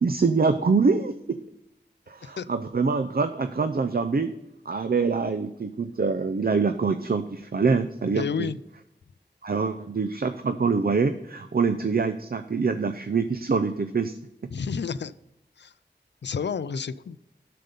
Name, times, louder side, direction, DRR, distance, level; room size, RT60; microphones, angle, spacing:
voice 1, 0.0-1.4 2.1-4.3 4.7-8.5 9.4-14.2, right 4 dB, 55° right, 10 dB, 0.5 m, -25 dB
voice 2, 8.1-8.6 14.5-15.1 15.6-15.7 16.2-17.2, left 6 dB, 75° left, 16 dB, 0.4 m, -30 dB
7.6 x 6.7 x 5.4 m, 0.90 s
wide cardioid pair, 40°, 18 cm